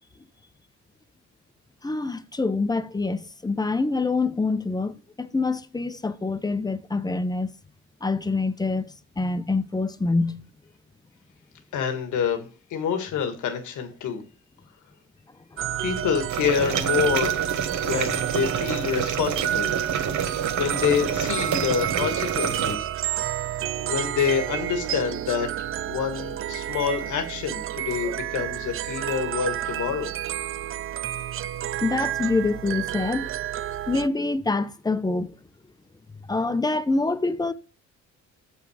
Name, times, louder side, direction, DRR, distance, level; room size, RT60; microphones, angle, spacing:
voice 1, 1.8-7.5 8.0-10.4 15.5-15.6 31.8-33.3 33.9-35.4 36.3-37.5, left 3 dB, 15° left, 0.7 m, -26 dB
voice 2, 11.7-14.2 15.8-17.5 17.8-19.7 20.6-22.9 23.7-30.1, left 7 dB, 80° left, 1.6 m, -27 dB
sound 1, 15.6-34.1, right 12 dB, 45° right, 0.4 m, -30 dB
sound 2, 16.3-22.8, right 7 dB, 70° right, 1.3 m, -28 dB
7.3 x 5.9 x 4.9 m
cardioid pair, 90°, 30 cm